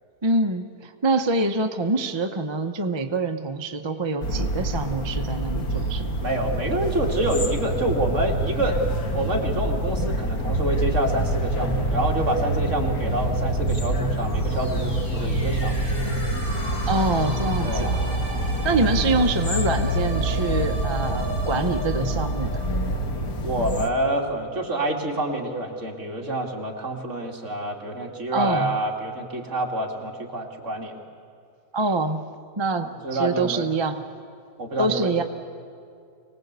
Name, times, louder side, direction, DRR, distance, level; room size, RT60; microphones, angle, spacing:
voice 1, 0.2-6.1 16.9-18.0 18.6-22.6 28.3-28.8 31.7-32.3 32.6-34.0 34.8-35.2, right 3 dB, 25° right, 6 dB, 0.7 m, -25 dB
sound 1, 4.2-23.9, right 1 dB, 75° left, 2.0 m, -26 dB
voice 2, 6.2-8.8 9.1-15.8 17.6-17.9 23.4-30.9 32.8-33.7 34.6-35.2, right 1 dB, 55° right, 0 dB, 2.8 m, -27 dB
sound 2, 14.2-23.9, equal, 30° left, 8.0 m, -37 dB
25.5 x 19.0 x 8.1 m, 2.4 s
omnidirectional pair, 1.6 m